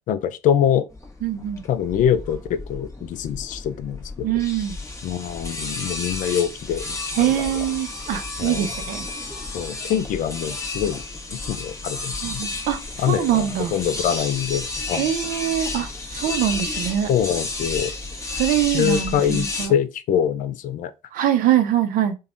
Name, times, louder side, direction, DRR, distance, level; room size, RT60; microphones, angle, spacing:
voice 1, 0.1-0.9 1.6-4.3 5.0-7.6 8.4-8.7 9.5-11.0 11.3-12.4 13.0-15.1 17.1-17.9 18.7-20.9, left 9 dB, 55° left, 0.4 m, -24 dB
sound 1, 0.9-19.7, left 2 dB, 20° left, 1.0 m, -32 dB
voice 2, 1.2-1.6 4.2-4.8 7.2-9.1 12.2-12.8 13.1-13.7 14.9-17.1 18.3-19.7 21.1-22.2, right 11 dB, 60° right, 0.5 m, -23 dB
3.3 x 2.2 x 2.5 m
hypercardioid pair, 60°, 16 cm